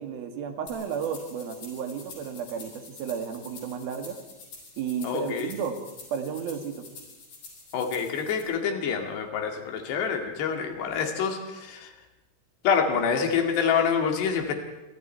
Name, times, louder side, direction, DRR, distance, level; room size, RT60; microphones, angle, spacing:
voice 1, 0.0-4.2 4.8-5.8 6.1-6.9, right 7 dB, 65° right, 6 dB, 3.5 m, -33 dB
sound 1, 0.7-8.4, left 4 dB, 60° left, 6.7 m, -47 dB
voice 2, 5.0-5.5 7.7-11.9 12.6-14.5, left 6 dB, 85° left, 4 dB, 4.4 m, -26 dB
28.5 x 24.0 x 4.5 m, 1.0 s
omnidirectional pair, 4.7 m